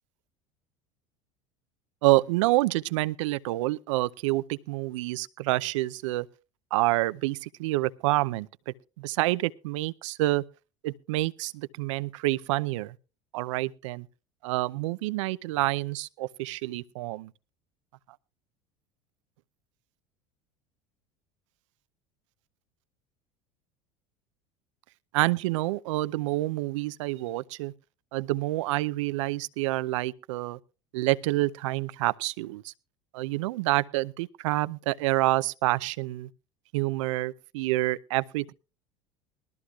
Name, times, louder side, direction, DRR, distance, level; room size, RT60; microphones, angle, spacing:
voice 1, 2.0-6.3 6.7-10.4 10.8-12.9 13.3-14.1 14.4-17.3 25.1-27.7 28.1-30.6 30.9-32.7 33.1-36.3 36.7-38.5, right 19 dB, 70° right, 0.6 m, -28 dB
20.5 x 13.0 x 2.4 m
hypercardioid pair, 80°, 16 cm